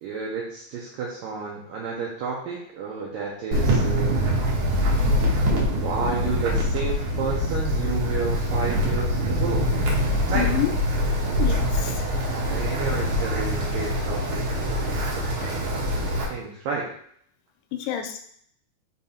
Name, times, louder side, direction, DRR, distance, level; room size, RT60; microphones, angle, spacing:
voice 1, 0.0-4.2 5.8-9.7 10.3-10.5 12.5-16.9, right 5 dB, 80° right, -3 dB, 2.0 m, -31 dB
Wind, 3.5-16.2, equal, 65° right, 2.1 m, -24 dB
voice 2, 10.3-10.7 11.4-12.0 17.7-18.3, left 12 dB, 80° left, 5 dB, 2.4 m, -28 dB
5.9 x 4.0 x 4.2 m, 0.65 s
omnidirectional pair, 4.9 m